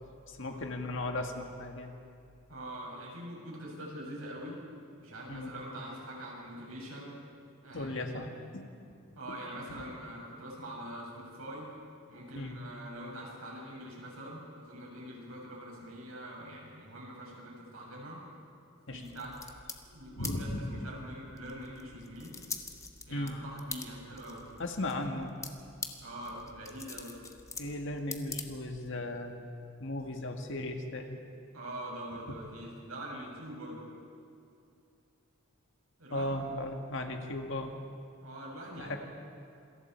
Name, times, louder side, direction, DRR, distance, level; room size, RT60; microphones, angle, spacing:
voice 1, 0.3-1.9 5.3-5.5 7.7-8.7 9.3-9.4 9.7-9.8 12.3-12.6 18.9-19.0 20.2-20.8 23.1-23.4 24.6-25.3 27.6-29.4 29.8-31.2 32.3-32.4 33.1-33.2 36.1-37.7 38.8-39.0, left 1 dB, 60° left, 4 dB, 2.0 m, -36 dB
voice 2, 2.5-4.6 5.0-7.2 7.6-8.3 9.2-11.7 12.1-18.2 18.9-19.3 19.9-22.4 23.1-24.4 26.0-27.1 31.5-33.9 36.0-36.3 38.2-39.0, right 1 dB, 80° right, -3 dB, 6.9 m, -44 dB
sound 1, 19.0-29.0, left 4 dB, 15° left, 1.2 m, -45 dB
27.5 x 22.5 x 4.6 m, 2.6 s
head